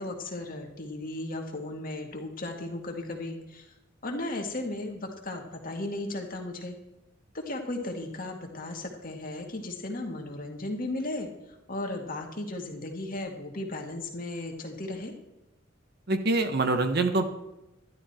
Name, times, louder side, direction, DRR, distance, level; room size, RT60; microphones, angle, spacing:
voice 1, 0.0-3.7 4.0-6.8 7.3-11.3 11.7-15.1, left 2 dB, 45° left, 2 dB, 1.9 m, -35 dB
voice 2, 16.1-17.3, right 2 dB, 50° right, 7 dB, 1.1 m, -25 dB
12.0 x 11.5 x 4.3 m, 0.96 s
head